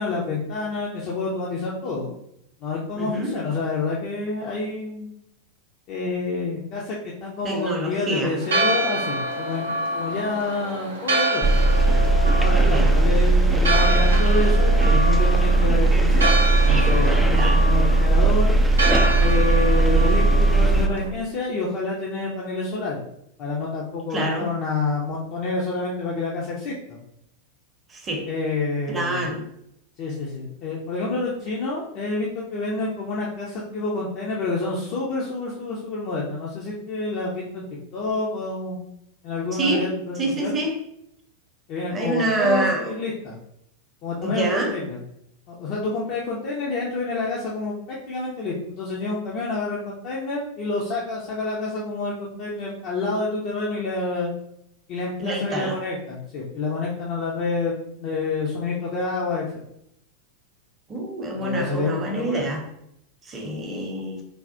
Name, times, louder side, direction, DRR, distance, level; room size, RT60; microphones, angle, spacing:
voice 1, 0.0-2.1 2.6-5.1 5.9-9.7 9.9-11.6 12.4-16.4 16.7-18.6 19.2-23.0 23.4-27.0 28.3-29.2 30.0-37.6 37.9-38.8 39.2-40.6 41.7-43.4 44.0-45.0 45.5-54.3 54.9-57.7 58.0-59.5 61.4-62.4, left 3 dB, 40° left, -4 dB, 0.6 m, -28 dB
voice 2, 3.0-3.4 7.4-8.4 12.6-12.9 17.4-17.6 24.1-24.5 27.9-28.3 28.9-29.5 39.5-40.8 41.9-43.0 44.2-44.7 55.2-55.8 60.9-62.6 63.2-64.2, right 1 dB, 20° right, 2 dB, 0.7 m, -26 dB
Church bell, 8.4-21.1, right 2 dB, 70° right, 0.6 m, -27 dB
sound 1, 11.4-20.9, right 2 dB, 5° right, 0.3 m, -18 dB
3.3 x 2.3 x 2.5 m, 0.76 s
figure-of-eight pair, 90°, 0 cm